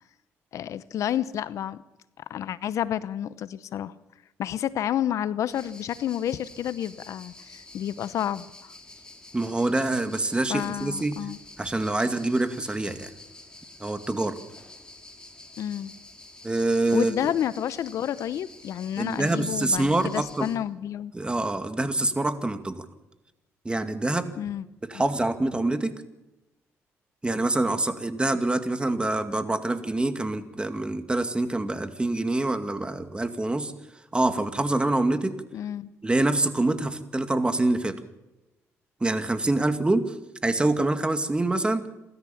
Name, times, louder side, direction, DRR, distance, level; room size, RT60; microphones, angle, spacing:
voice 1, 0.5-1.8 2.3-3.9 4.4-8.7 10.5-11.4 15.6-15.9 16.9-21.1 24.4-24.6 24.9-25.0 35.5-35.9, left 10 dB, 70° left, 16 dB, 0.8 m, -30 dB
sound 1, 5.5-20.6, left 2 dB, 15° left, 4.1 m, -48 dB
voice 2, 9.3-11.2 11.6-13.1 13.8-14.4 16.4-17.1 19.0-20.5 21.1-22.9 23.6-24.3 24.9-25.9 27.2-33.7 34.1-35.3 36.0-37.9 39.0-40.0 40.4-41.8, right 2 dB, 20° right, 9 dB, 2.3 m, -25 dB
28.0 x 13.5 x 7.1 m, 0.99 s
supercardioid pair, 70°, 6 cm